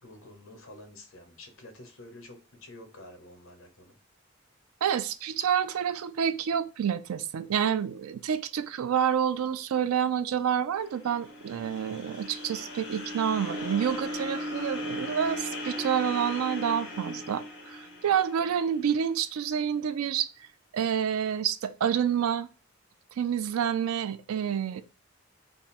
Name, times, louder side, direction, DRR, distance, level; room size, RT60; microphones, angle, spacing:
voice 1, 0.0-4.0, left 1 dB, 75° left, 0.9 m, -49 dB
voice 2, 4.8-20.3 20.7-22.5 23.2-24.8, right 8 dB, 90° right, 0.4 m, -28 dB
sound 1, 10.8-19.0, left 1 dB, 60° left, 1.8 m, -37 dB
3.6 x 2.0 x 4.1 m
head